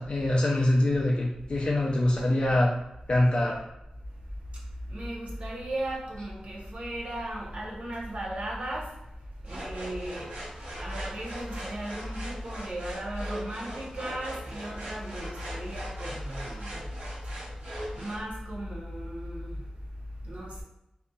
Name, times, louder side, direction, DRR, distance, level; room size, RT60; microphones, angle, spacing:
voice 1, 0.0-2.7 3.1-3.6, left 1 dB, 40° left, -3 dB, 0.4 m, -24 dB
voice 2, 4.9-8.9 9.4-10.3 10.8-16.9 17.9-19.6 20.2-20.6, right 1 dB, 55° right, -2 dB, 0.7 m, -36 dB
sound 1, 9.4-18.2, equal, 75° right, 1.2 m, -41 dB
2.7 x 2.5 x 2.2 m, 0.88 s
wide cardioid pair, 125°, 3 cm